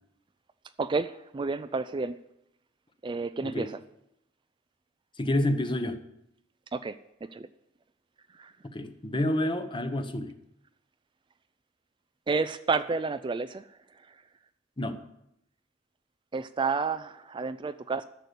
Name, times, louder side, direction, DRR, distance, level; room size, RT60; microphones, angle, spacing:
voice 1, 0.8-2.2 3.0-3.7 6.7-7.0 7.3-7.5 8.4-8.5 12.3-13.6 16.3-18.0, right 4 dB, 25° right, 11 dB, 0.4 m, -30 dB
voice 2, 5.2-6.0 8.7-10.3 14.8-15.0, left 1 dB, 25° left, 8 dB, 1.0 m, -28 dB
12.0 x 6.8 x 8.1 m, 0.80 s
head